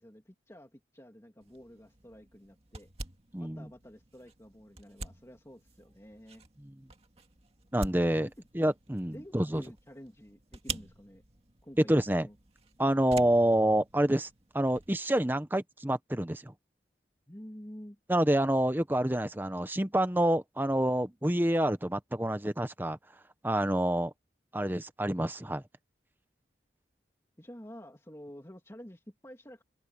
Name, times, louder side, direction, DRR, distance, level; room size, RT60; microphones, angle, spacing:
voice 1, 0.0-2.9 3.4-6.5 8.2-8.5 9.1-11.2 11.6-12.4 17.3-18.0 27.4-29.6, equal, 15° left, 2.7 m, -50 dB
sound 1, 1.4-15.0, right 3 dB, 35° right, 2.2 m, -47 dB
voice 2, 3.3-3.6 7.7-8.3 8.5-9.6 11.9-12.3 12.8-14.3 14.5-16.5 18.1-23.0 23.4-24.1 24.5-25.6, right 1 dB, 10° right, 0.8 m, -27 dB
open air
head